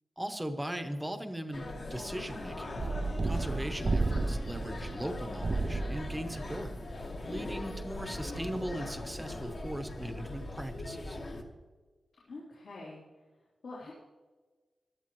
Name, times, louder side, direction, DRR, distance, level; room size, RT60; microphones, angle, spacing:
voice 1, 0.2-2.9 3.2-6.7 7.3-11.2, right 1 dB, 5° right, 7 dB, 0.9 m, -39 dB
sound 1, 1.5-11.4, left 2 dB, 45° left, 1.4 m, -41 dB
sound 2, 2.4-9.4, equal, 20° left, 1.0 m, -52 dB
Suspense Drums, 2.8-7.6, right 3 dB, 30° right, 0.4 m, -33 dB
voice 2, 12.3-13.0 13.6-13.9, left 2 dB, 70° left, -6 dB, 3.2 m, -45 dB
16.0 x 12.0 x 3.1 m, 1.3 s
wide cardioid pair, 170°, 0 cm